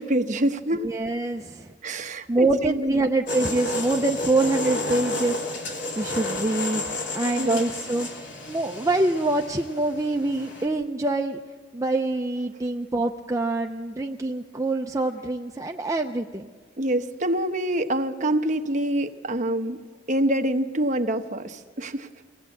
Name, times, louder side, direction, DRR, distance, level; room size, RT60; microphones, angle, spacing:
voice 1, 0.0-0.9 1.8-2.9 7.4-7.6 16.8-19.8 20.1-22.1, right 1 dB, 40° right, 6 dB, 1.0 m, -26 dB
voice 2, 0.7-1.7 2.3-5.7 6.0-6.8 7.1-8.1 8.5-11.4 11.7-16.5, right 2 dB, 15° right, 3 dB, 0.5 m, -25 dB
sound 1, 3.3-10.7, left 2 dB, 65° left, 2.8 m, -31 dB
23.0 x 17.0 x 8.4 m, 1.5 s
head